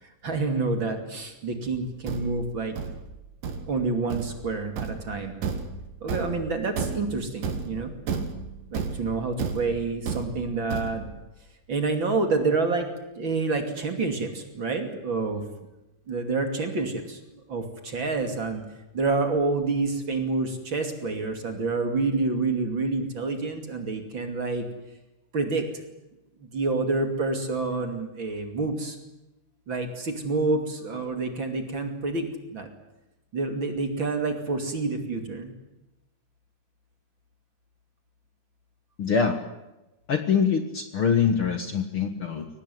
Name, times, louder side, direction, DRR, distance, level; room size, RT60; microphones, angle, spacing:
voice 1, 0.0-2.7 3.7-5.4 6.0-7.9 8.7-11.1 11.7-12.9 13.2-15.4 16.1-17.2 17.5-18.6 18.9-24.6 25.3-25.7 26.5-29.0 29.7-32.7 33.3-35.5, right 3 dB, 40° right, 5 dB, 3.1 m, -28 dB
Thump thud, 1.7-11.3, right 5 dB, 90° right, 3.6 m, -33 dB
voice 2, 39.0-39.4 40.1-42.5, left 6 dB, 50° left, 7 dB, 1.9 m, -24 dB
23.5 x 18.5 x 9.5 m, 0.99 s
omnidirectional pair, 3.7 m